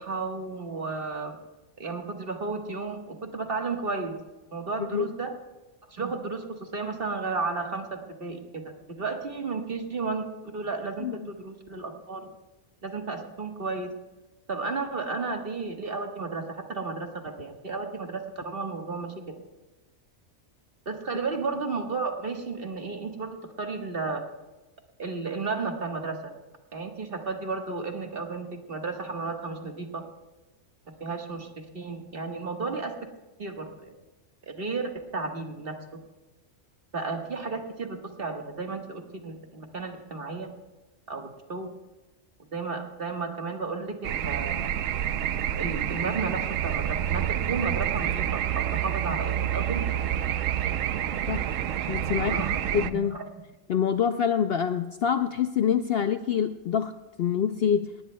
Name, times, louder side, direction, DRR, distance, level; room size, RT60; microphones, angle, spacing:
voice 1, 0.0-1.4 1.8-4.2 4.5-5.3 5.9-12.3 12.8-13.9 14.5-19.1 20.8-24.2 25.0-26.3 26.7-30.0 31.0-32.9 33.4-33.9 34.4-35.7 36.9-40.5 41.1-41.7 42.5-44.7 45.6-49.8 52.2-52.6 52.9-53.2, right 4 dB, 45° right, 3 dB, 1.6 m, -33 dB
sound 1, 44.0-52.9, right 10 dB, 80° right, 1.0 m, -28 dB
voice 2, 51.9-52.4 52.7-53.1 53.7-56.9 57.2-57.9, left 8 dB, 65° left, 9 dB, 0.6 m, -26 dB
18.5 x 18.5 x 2.2 m, 1.1 s
omnidirectional pair, 1.3 m